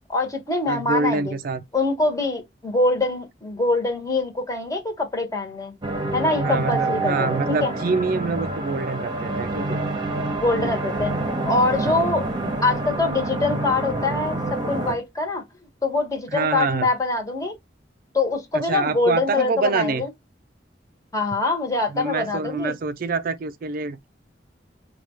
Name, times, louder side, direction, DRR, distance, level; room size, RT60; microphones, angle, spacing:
voice 1, 0.1-1.3 1.7-5.7 6.1-7.7 10.4-11.1 11.4-12.3 12.6-14.4 14.7-15.4 15.8-17.5 18.1-20.1 21.1-22.7, left 3 dB, 20° left, 1.2 m, -24 dB
voice 2, 0.7-1.6 6.4-9.8 11.8-12.0 16.3-16.9 18.5-20.0 21.9-24.1, right 4 dB, 55° right, 0.4 m, -26 dB
sound 1, 5.8-14.9, right 2 dB, 25° right, 1.0 m, -27 dB
4.6 x 2.4 x 4.2 m
head